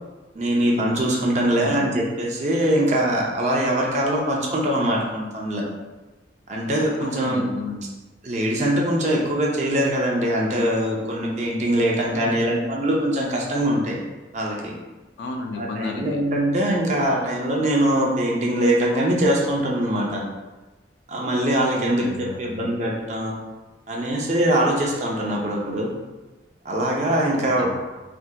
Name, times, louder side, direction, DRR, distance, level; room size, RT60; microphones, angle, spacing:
voice 1, 0.3-5.6 6.5-7.4 8.2-14.0 14.3-14.7 15.5-20.2 21.1-23.3 23.9-25.9 26.6-27.7, right 1 dB, 40° right, -2 dB, 0.5 m, -22 dB
voice 2, 1.5-2.0 7.0-7.9 12.1-12.5 15.2-16.3 21.7-22.7 27.3-27.8, left 3 dB, 65° left, 3 dB, 0.4 m, -33 dB
3.3 x 2.8 x 2.2 m, 1.2 s
head